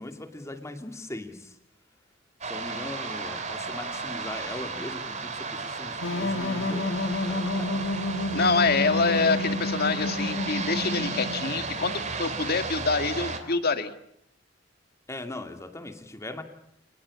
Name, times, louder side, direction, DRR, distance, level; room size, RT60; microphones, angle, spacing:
voice 1, 0.0-1.5 2.4-7.8 15.1-16.4, left 1 dB, 15° left, 6 dB, 2.5 m, -39 dB
sound 1, 2.4-13.4, right 4 dB, 40° right, 3.1 m, -34 dB
sound 2, 6.0-11.6, left 1 dB, 80° left, 2.3 m, -30 dB
voice 2, 8.3-13.9, left 4 dB, 55° left, 9 dB, 1.8 m, -26 dB
29.0 x 19.5 x 8.5 m, 0.78 s
head